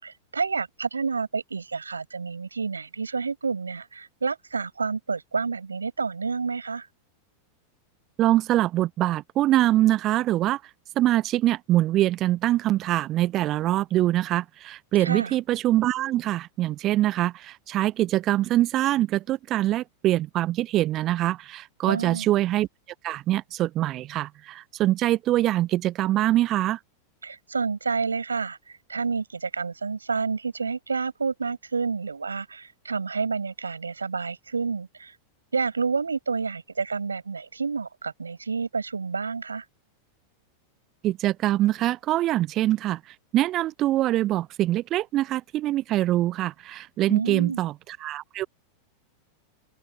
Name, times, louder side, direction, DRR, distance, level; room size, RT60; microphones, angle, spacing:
voice 1, 0.0-6.9 15.0-15.3 21.9-22.3 27.2-35.2 35.5-39.7 47.1-47.6, right 5 dB, 75° right, 6.4 m, -29 dB
voice 2, 8.2-10.6 11.0-22.7 23.0-26.8 41.0-43.0 43.3-47.7 48.0-48.5, right 14 dB, 35° right, 0.7 m, -24 dB
open air
figure-of-eight pair, 90°, 0 cm